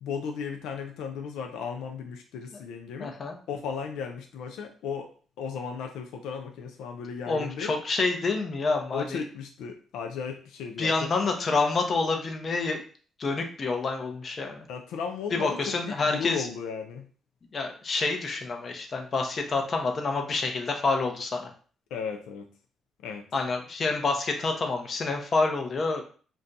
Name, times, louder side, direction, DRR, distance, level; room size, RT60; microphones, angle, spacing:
voice 1, 0.0-3.1 3.5-5.1 5.4-7.7 8.9-11.1 14.7-17.1 21.9-22.5 23.0-23.3, left 6 dB, 90° left, 4 dB, 0.3 m, -35 dB
voice 2, 3.0-3.4 7.3-9.2 10.8-12.8 13.2-14.6 15.3-16.5 17.5-21.5 23.3-26.0, left 3 dB, 45° left, 4 dB, 0.6 m, -28 dB
2.5 x 2.3 x 3.9 m, 0.41 s
cardioid pair, 90°, 0 cm